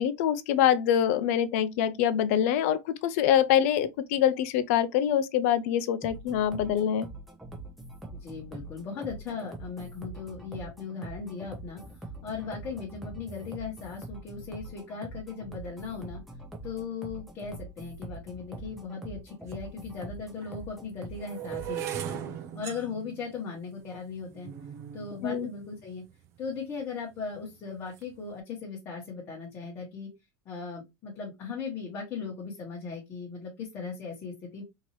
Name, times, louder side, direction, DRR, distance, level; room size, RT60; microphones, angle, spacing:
voice 1, 0.0-7.1 25.2-25.5, left 10 dB, 60° left, 0.5 m, -25 dB
sound 1, 6.0-22.0, right 2 dB, ahead, 0.8 m, -43 dB
voice 2, 8.2-11.8 12.2-16.2 16.6-22.2 22.5-24.5 24.9-26.0 26.4-30.1 30.4-34.6, left 5 dB, 25° left, 1.2 m, -38 dB
sound 2, 19.5-19.6 20.3-26.5 27.2-27.5 27.8-28.2, right 10 dB, 35° right, 0.5 m, -40 dB
4.4 x 2.9 x 3.0 m
supercardioid pair, 170°, 9 cm